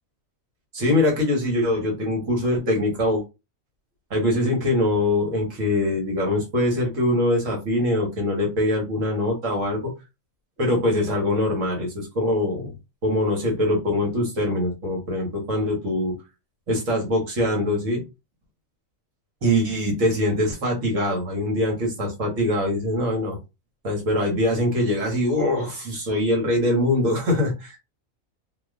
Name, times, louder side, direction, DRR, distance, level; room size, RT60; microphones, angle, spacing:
voice 1, 0.7-3.2 4.1-9.9 10.6-12.7 13.0-16.2 16.7-18.0 19.4-23.4 23.8-27.8, left 1 dB, 65° right, 0 dB, 1.4 m, -23 dB
2.8 x 2.4 x 3.5 m, 0.26 s
omnidirectional pair, 1.4 m